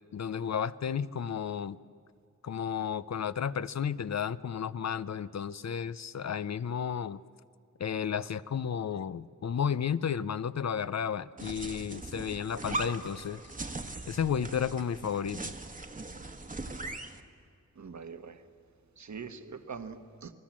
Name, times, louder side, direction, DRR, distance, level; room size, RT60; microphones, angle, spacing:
voice 1, 0.1-1.8 2.4-7.2 7.8-13.4 14.1-15.4, left 7 dB, 60° left, 15 dB, 0.6 m, -32 dB
sound 1, 11.4-17.2, right 2 dB, 25° right, 1.3 m, -40 dB
voice 2, 17.7-18.4 19.0-20.3, right 5 dB, 65° right, 8 dB, 1.4 m, -43 dB
29.0 x 20.0 x 7.5 m, 2.2 s
wide cardioid pair, 120°, 31 cm